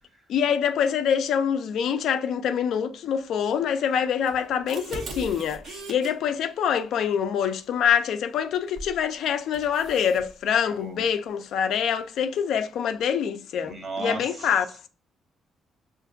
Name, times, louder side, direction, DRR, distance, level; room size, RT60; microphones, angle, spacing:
voice 1, 0.3-14.9, left 8 dB, 75° left, 0.4 m, -25 dB
sound 1, 4.3-6.1 8.8-9.0 9.5-10.3, right 2 dB, 70° right, 0.8 m, -39 dB
voice 2, 10.7-11.0 13.6-14.5, right 3 dB, 35° right, 1.0 m, -35 dB
5.6 x 2.5 x 2.5 m
cardioid pair, 90°, 0 cm